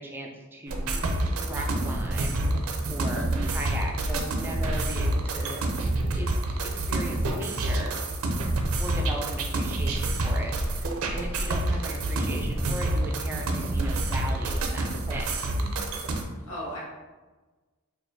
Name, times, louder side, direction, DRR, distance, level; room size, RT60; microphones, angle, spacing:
voice 1, 0.0-2.4 2.9-5.9 6.1-6.3 6.6-8.0 8.8-15.8, right 1 dB, 10° right, -1 dB, 0.4 m, -38 dB
sound 1, 0.7-16.2, right 1 dB, 85° right, 0.5 m, -28 dB
voice 2, 3.1-3.5 16.5-16.8, equal, 80° left, -7 dB, 1.1 m, -37 dB
4.3 x 2.5 x 2.6 m, 1.3 s
head